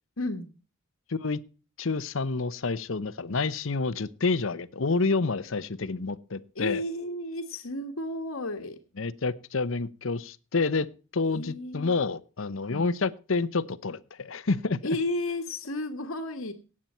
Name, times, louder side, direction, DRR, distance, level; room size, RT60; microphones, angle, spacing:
voice 1, 0.2-0.5 6.5-8.8 11.2-12.0 12.7-12.9 14.8-16.5, left 1 dB, 85° left, 1 dB, 1.5 m, -33 dB
voice 2, 1.1-1.4 1.8-6.8 9.0-10.9 11.1-15.0, left 4 dB, 65° left, 16 dB, 0.8 m, -28 dB
17.0 x 8.7 x 4.3 m, 0.35 s
head